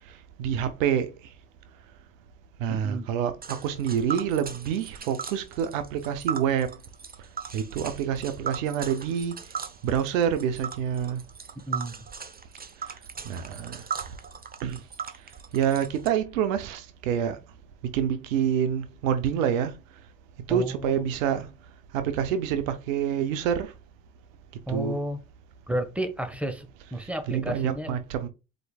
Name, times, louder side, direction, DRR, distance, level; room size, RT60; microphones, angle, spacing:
voice 1, 0.4-1.1 2.6-6.7 7.5-9.3 9.8-11.2 13.2-14.1 14.6-14.8 15.5-17.4 17.9-19.7 20.5-21.5 21.9-23.7 24.7-25.0 27.3-28.3, right 8 dB, 90° right, 0.7 m, -27 dB
voice 2, 2.7-3.1 11.7-11.9 20.5-21.0 24.7-25.2 25.7-28.0, right 1 dB, 5° right, 1.2 m, -32 dB
Tick, 3.4-16.1, right 6 dB, 25° right, 0.9 m, -38 dB
5.0 x 4.5 x 2.3 m
hypercardioid pair, 60°, 38 cm